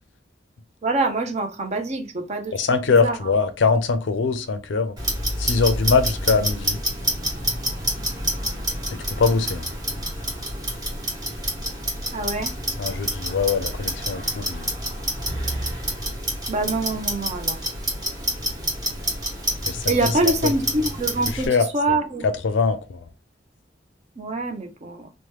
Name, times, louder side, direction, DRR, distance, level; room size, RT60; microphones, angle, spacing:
voice 1, 0.8-3.3 12.1-12.5 16.5-17.6 19.9-22.3 24.2-25.1, right 2 dB, 40° right, 0.5 m, -25 dB
voice 2, 2.5-4.9 5.4-6.8 8.9-9.7 12.8-14.7 19.7-20.1 21.3-21.6 22.4-23.1, left 4 dB, 90° left, 0.5 m, -22 dB
Clock, 5.0-21.5, equal, 20° right, 1.1 m, -28 dB
2.9 x 2.1 x 3.2 m
head